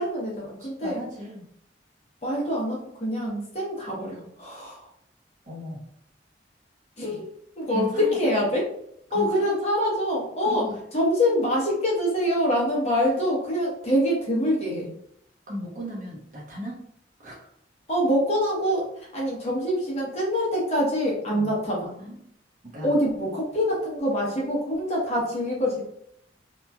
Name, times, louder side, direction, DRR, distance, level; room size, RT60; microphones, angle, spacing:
voice 1, 0.0-1.0 2.2-4.8 7.0-7.3 7.6-8.6 9.1-10.6 10.9-14.9 17.9-21.9 22.8-25.8, equal, 35° left, -4 dB, 0.9 m, -25 dB
voice 2, 0.6-1.5 5.4-5.8 7.7-8.4 9.1-9.8 10.4-10.8 15.5-16.8 17.2-17.5 21.3-21.5 22.0-22.2 22.6-22.9, equal, 45° right, -4 dB, 0.9 m, -36 dB
3.0 x 2.4 x 2.3 m, 0.69 s
head